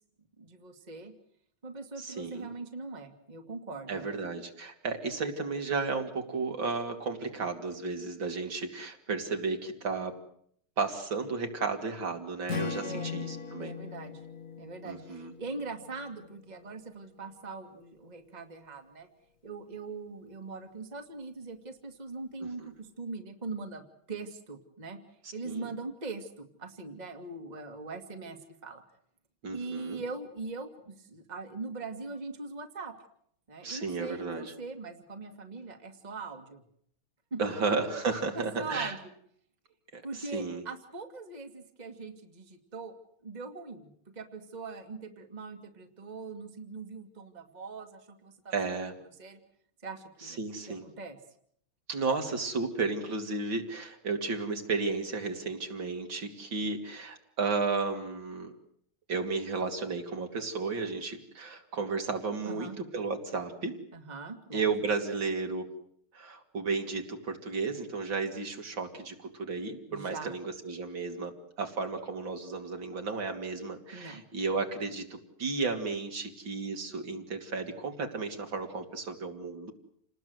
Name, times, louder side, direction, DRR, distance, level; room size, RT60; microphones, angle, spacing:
voice 1, 0.4-1.1 1.6-4.1 9.1-9.2 12.8-13.1 13.5-14.3 14.6-19.1 19.4-25.0 25.3-28.8 29.5-33.0 33.5-36.6 37.3-37.4 38.4-39.1 40.0-43.0 43.2-48.5 49.2-49.4 49.8-50.4 50.7-51.2 62.4-62.8 63.9-64.7 69.9-70.4 73.9-74.2, right 3 dB, 20° right, 5 dB, 2.1 m, -41 dB
voice 2, 2.0-2.5 3.9-10.2 10.8-13.7 14.9-15.3 22.4-22.7 25.4-25.7 29.4-30.0 33.6-34.5 37.4-38.9 39.9-40.6 48.5-48.9 50.2-50.8 51.9-58.5 59.1-63.7 64.5-65.7 66.1-79.7, right 4 dB, 65° right, 4 dB, 3.5 m, -33 dB
Strum, 12.5-16.7, left 6 dB, 40° left, 2.2 m, -40 dB
29.0 x 20.0 x 7.9 m, 0.67 s
omnidirectional pair, 2.3 m